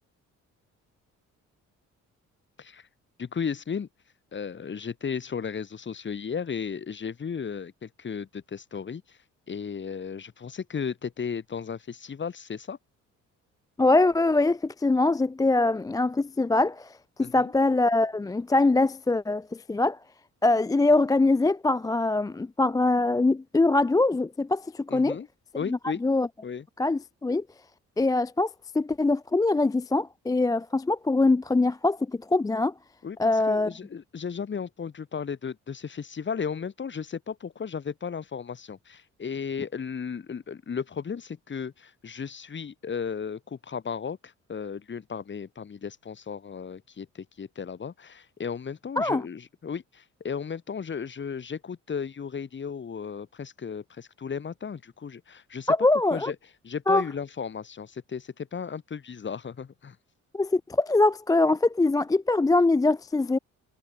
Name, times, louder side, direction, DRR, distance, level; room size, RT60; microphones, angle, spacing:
voice 1, 3.2-3.9 4.3-9.2 9.5-12.8 17.2-17.5 24.9-25.3 25.6-26.0 26.4-26.7 33.0-55.7 56.1-56.4 56.6-60.0, left 6 dB, 40° left, 2.2 m, -35 dB
voice 2, 13.8-20.0 20.4-25.2 25.7-26.3 26.8-27.4 28.0-32.7 33.2-33.7 49.0-49.2 55.7-56.3 56.9-57.0 60.3-63.4, left 2 dB, 10° left, 0.4 m, -23 dB
cardioid pair, 90°, 30 cm